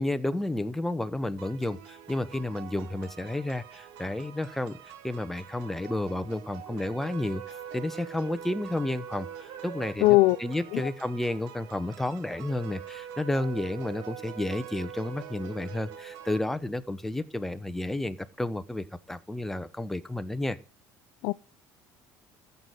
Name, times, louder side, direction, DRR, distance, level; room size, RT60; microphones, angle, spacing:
voice 1, 0.0-7.4 7.7-20.6, left 1 dB, 5° left, 1.1 m, -31 dB
sound 1, 1.4-16.4, right 9 dB, 80° right, 1.9 m, -48 dB
sound 2, 6.7-17.1, right 9 dB, 55° right, 4.0 m, -44 dB
voice 2, 10.0-10.4 10.7-10.8 21.2-21.3, left 21 dB, 75° left, 0.7 m, -19 dB
14.0 x 8.4 x 9.2 m
cardioid pair, 145°, 8 cm